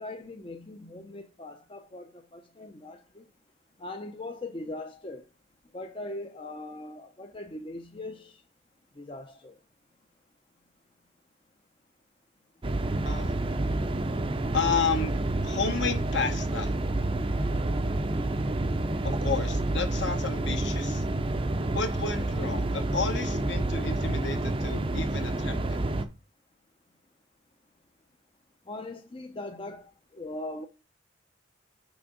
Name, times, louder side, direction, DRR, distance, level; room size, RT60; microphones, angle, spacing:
voice 1, 0.0-3.3 3.8-5.2 5.7-8.4 9.0-9.5 28.7-30.7, left 2 dB, 25° left, 0.5 m, -40 dB
sound 1, 12.6-26.1, right 2 dB, 25° right, 0.5 m, -29 dB
voice 2, 13.0-13.4 14.5-15.1 15.4-16.7 19.0-21.1 21.7-25.8, left 5 dB, 60° left, 1.1 m, -31 dB
6.1 x 4.7 x 5.1 m
head